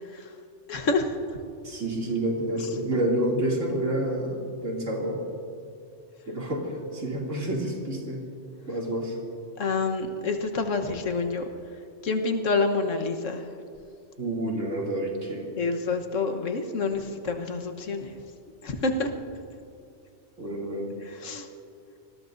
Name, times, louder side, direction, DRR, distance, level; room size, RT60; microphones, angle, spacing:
voice 1, 0.7-1.2 2.6-2.7 9.6-11.5 12.0-13.5 15.6-18.1 18.6-19.1 21.1-21.5, left 3 dB, 90° left, 5 dB, 1.5 m, -28 dB
voice 2, 1.6-5.2 6.3-8.2 8.7-9.2 14.2-15.5 20.4-20.9, right 1 dB, 85° right, -2 dB, 3.0 m, -29 dB
26.0 x 20.5 x 2.6 m, 2.5 s
omnidirectional pair, 1.3 m